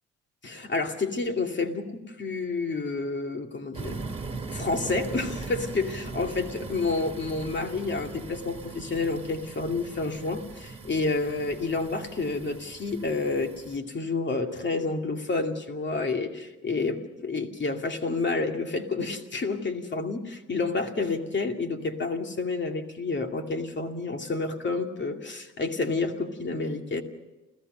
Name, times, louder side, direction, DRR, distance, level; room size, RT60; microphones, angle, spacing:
voice 1, 0.4-4.0 4.5-27.0, left 3 dB, 40° left, 4 dB, 2.4 m, -29 dB
sound 1, 3.7-13.8, right 4 dB, 20° right, 2.9 m, -40 dB
29.0 x 15.0 x 6.7 m, 1.0 s
cardioid pair, 90°, 30 cm